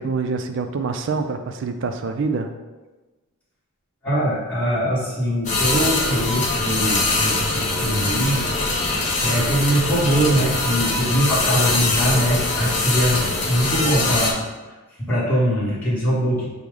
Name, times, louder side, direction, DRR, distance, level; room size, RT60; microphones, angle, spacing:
voice 1, 0.0-2.5, right 4 dB, 55° right, 7 dB, 0.4 m, -25 dB
voice 2, 4.0-8.5 9.2-14.4 15.1-16.5, equal, 5° left, -10 dB, 1.0 m, -22 dB
sound 1, 5.4-14.3, left 2 dB, 35° left, 0.6 m, -22 dB
5.3 x 2.1 x 4.7 m, 1.2 s
head